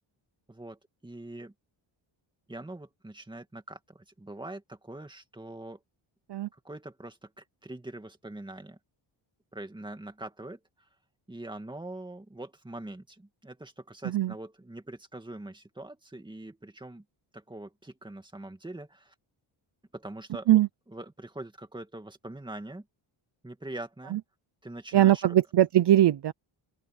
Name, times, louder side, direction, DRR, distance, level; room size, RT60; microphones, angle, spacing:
voice 1, 0.5-1.5 2.5-5.8 6.5-8.8 9.5-10.6 11.3-17.0 17.3-19.1 19.9-20.6 20.9-22.8 23.4-24.2 24.6-25.4, right 2 dB, 10° right, 2.3 m, -43 dB
voice 2, 24.9-26.3, right 13 dB, 55° right, 0.7 m, -21 dB
open air
wide cardioid pair, 155°, 48 cm